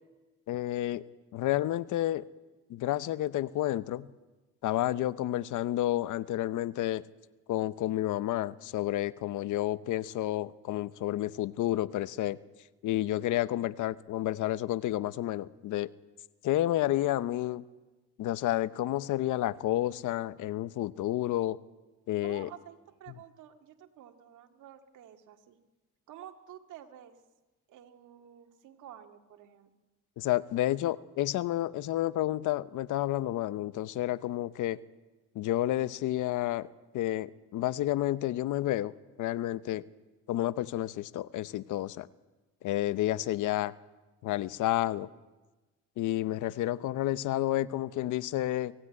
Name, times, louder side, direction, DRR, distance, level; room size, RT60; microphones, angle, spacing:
voice 1, 0.5-1.0 1.3-2.3 2.7-4.1 4.6-7.0 7.5-12.4 12.8-15.9 16.4-17.6 18.2-21.6 22.1-22.5 30.2-34.8 35.3-36.7 36.9-39.9 40.3-42.1 42.6-43.7 44.2-45.1 46.0-48.7, left 14 dB, 85° left, 16 dB, 0.8 m, -30 dB
voice 2, 22.2-25.6 26.1-27.2 27.7-29.7, right 10 dB, 85° right, 5 dB, 2.0 m, -50 dB
24.5 x 16.5 x 9.7 m, 1.2 s
cardioid pair, 90°, 30 cm